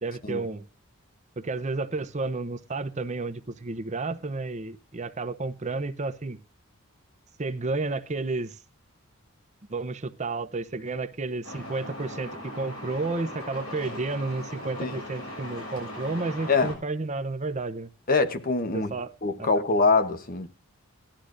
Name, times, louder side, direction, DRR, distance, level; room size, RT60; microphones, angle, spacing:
voice 1, 0.0-0.6 1.4-6.4 7.4-8.6 9.7-17.9 18.7-19.1 19.4-19.5, right 3 dB, 35° right, 0.7 m, -31 dB
Truck, 11.4-16.7, left 1 dB, 90° left, 7.0 m, -39 dB
voice 2, 18.1-18.9 19.2-20.5, left 4 dB, 40° left, 1.0 m, -24 dB
18.0 x 11.5 x 2.5 m
head